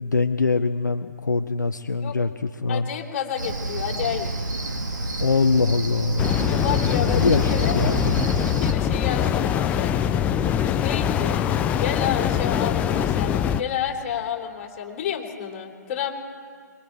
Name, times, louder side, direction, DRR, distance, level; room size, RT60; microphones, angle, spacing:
voice 1, 0.0-2.3 2.6-2.9 5.2-6.6 7.1-8.1, left 4 dB, 75° left, 8 dB, 0.8 m, -23 dB
voice 2, 2.7-4.3 4.6-4.8 6.4-7.8 8.4-9.9 10.6-11.5 11.8-16.1, left 9 dB, 35° left, 0 dB, 3.9 m, -30 dB
Cricket, 3.4-8.7, right 2 dB, 75° right, 2.4 m, -29 dB
sound 1, 6.2-13.6, left 9 dB, 15° left, 0.5 m, -23 dB
27.0 x 22.5 x 4.7 m, 2.2 s
figure-of-eight pair, 135°, 10 cm